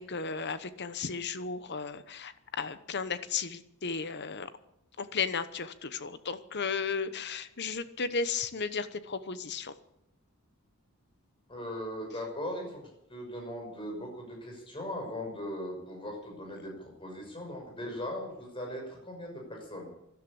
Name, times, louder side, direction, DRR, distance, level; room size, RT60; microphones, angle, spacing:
voice 1, 0.0-4.5 5.0-9.7, left 5 dB, 50° left, 13 dB, 1.0 m, -34 dB
voice 2, 11.5-12.8 13.1-19.9, left 1 dB, 25° left, 1 dB, 6.0 m, -39 dB
13.0 x 12.5 x 8.6 m, 0.83 s
head